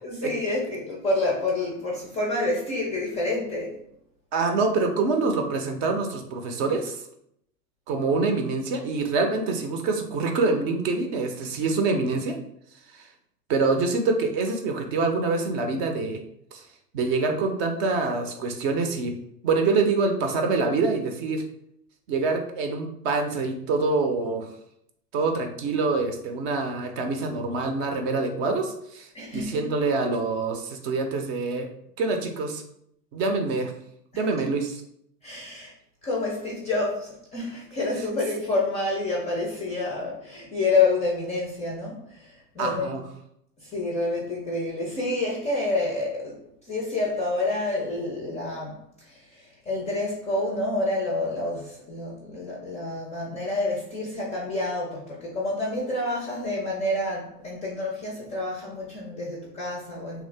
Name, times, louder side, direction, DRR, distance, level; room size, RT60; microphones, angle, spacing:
voice 1, 0.0-3.8 29.1-29.7 35.2-35.7 36.0-43.0 43.6-60.3, left 2 dB, 15° left, -2 dB, 0.4 m, -28 dB
voice 2, 4.3-7.0 7.9-12.3 12.9-13.0 13.5-16.2 16.5-16.6 16.9-19.1 19.4-21.4 22.1-24.5 25.1-31.7 32.0-32.6 33.1-33.7 34.2-34.8 42.6-43.0, right 3 dB, 45° right, 4 dB, 0.6 m, -25 dB
2.8 x 2.4 x 3.3 m, 0.73 s
hypercardioid pair, 95°, 49 cm